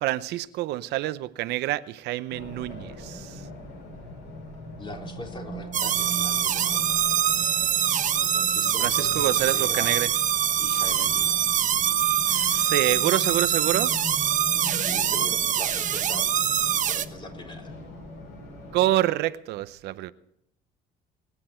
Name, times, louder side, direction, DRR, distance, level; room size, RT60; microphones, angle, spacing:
voice 1, 0.0-3.4 8.8-10.1 12.3-14.0 18.7-20.1, right 15 dB, 85° right, 0.7 m, -27 dB
Race car auto racing, 2.3-18.9, equal, 85° left, 7.4 m, -40 dB
voice 2, 4.8-7.0 8.3-9.9 10.6-11.5 14.8-16.3 16.9-17.7, left 2 dB, 30° left, 3.9 m, -42 dB
sound 1, 5.7-17.0, right 9 dB, 50° right, 1.0 m, -24 dB
24.0 x 10.0 x 4.4 m
cardioid pair, 110°, 17 cm